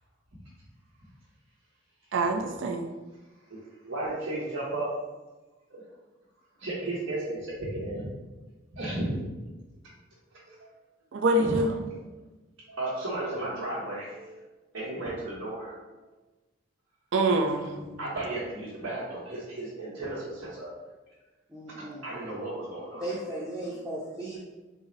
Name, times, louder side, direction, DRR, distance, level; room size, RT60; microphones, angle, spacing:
voice 1, 2.1-2.9 11.1-11.7 17.1-17.8, right 2 dB, 65° right, 3 dB, 0.4 m, -25 dB
voice 2, 3.5-5.0 5.7-5.8 6.6-8.1 8.7-9.3 10.4-10.6 11.4-12.1 12.7-14.4 14.7-15.8 17.7-20.7 22.0-23.1, right 1 dB, 85° right, -9 dB, 1.0 m, -34 dB
voice 3, 21.5-22.2 23.0-24.4, right 1 dB, 5° right, -9 dB, 0.6 m, -36 dB
3.7 x 2.0 x 3.9 m, 1.2 s
head